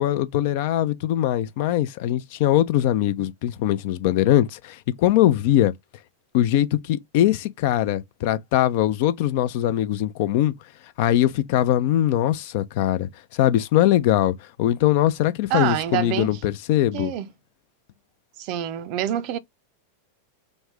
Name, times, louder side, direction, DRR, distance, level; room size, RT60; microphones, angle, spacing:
voice 1, 0.0-5.7 6.3-10.5 11.0-17.1, left 13 dB, 50° left, 0.4 m, -21 dB
voice 2, 15.5-16.4 16.9-17.3 18.4-19.4, right 11 dB, 45° right, 0.4 m, -26 dB
3.1 x 2.6 x 3.3 m
figure-of-eight pair, 90°, 0 cm